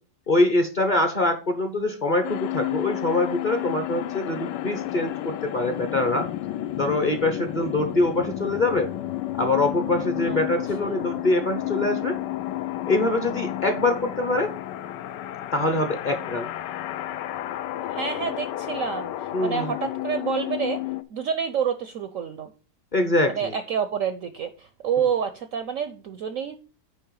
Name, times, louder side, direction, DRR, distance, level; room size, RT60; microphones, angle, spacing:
voice 1, 0.3-6.2 6.8-8.9 9.4-12.1 12.8-14.5 15.5-16.5 19.3-19.7 22.9-23.5, left 2 dB, 35° left, 5 dB, 0.9 m, -24 dB
sound 1, 2.2-21.0, left 14 dB, 80° left, 1.2 m, -31 dB
voice 2, 10.8-11.2 17.9-20.8 21.1-22.5 23.3-26.6, right 7 dB, 65° right, 10 dB, 0.8 m, -28 dB
9.5 x 3.2 x 6.3 m, 0.35 s
omnidirectional pair, 1.9 m